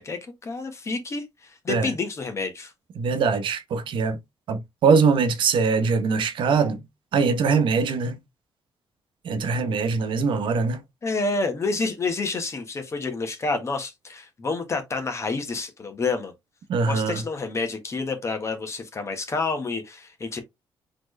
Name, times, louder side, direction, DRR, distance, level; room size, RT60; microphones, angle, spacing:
voice 1, 0.0-2.7 11.0-16.3 16.9-20.4, left 3 dB, 35° left, 1.5 m, -29 dB
voice 2, 3.0-4.2 4.5-6.8 7.1-8.2 9.2-10.8 16.7-17.2, right 5 dB, 70° right, 0.9 m, -22 dB
4.4 x 3.7 x 3.2 m
cardioid pair, 125°, 9 cm